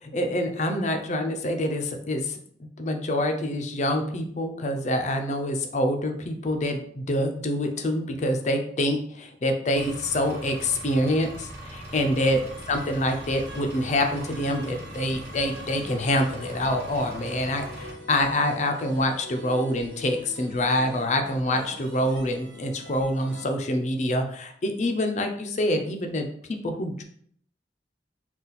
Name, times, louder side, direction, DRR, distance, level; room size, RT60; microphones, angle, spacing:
voice 1, 0.0-12.4 12.7-26.3 26.6-27.0, left 1 dB, 40° left, 5 dB, 0.5 m, -26 dB
Engine, 9.8-17.9, right 1 dB, 65° right, 1.1 m, -41 dB
sound 1, 11.9-23.4, left 2 dB, 85° right, 1.5 m, -44 dB
4.0 x 2.4 x 4.0 m, 0.62 s
head